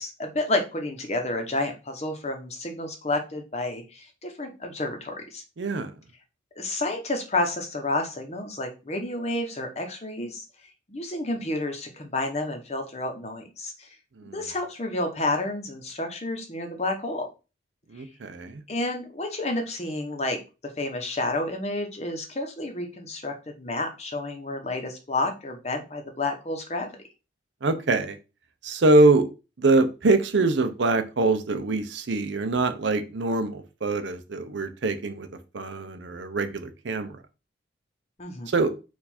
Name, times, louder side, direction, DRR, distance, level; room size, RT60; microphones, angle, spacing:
voice 1, 0.0-5.4 6.6-10.4 10.9-13.9 14.3-17.3 18.7-20.4 20.8-27.0 38.2-38.5, left 2 dB, 35° left, 4 dB, 0.8 m, -30 dB
voice 2, 5.6-5.9 14.2-14.4 17.9-18.6 27.6-28.2 28.6-29.3 29.6-35.3 35.5-37.2 38.5-38.7, right 2 dB, 75° right, 8 dB, 0.6 m, -24 dB
4.6 x 2.5 x 4.2 m, 0.30 s
head